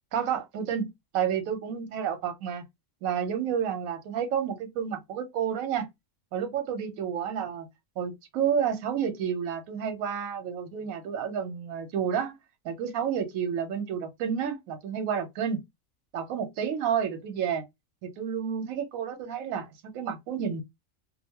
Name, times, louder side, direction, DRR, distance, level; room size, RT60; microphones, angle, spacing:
voice 1, 0.1-2.6 3.0-5.9 6.3-7.7 8.0-12.3 12.6-15.6 16.1-17.6 18.0-20.6, right 8 dB, 85° right, 1.1 m, -30 dB
2.6 x 2.2 x 2.8 m
omnidirectional pair, 1.4 m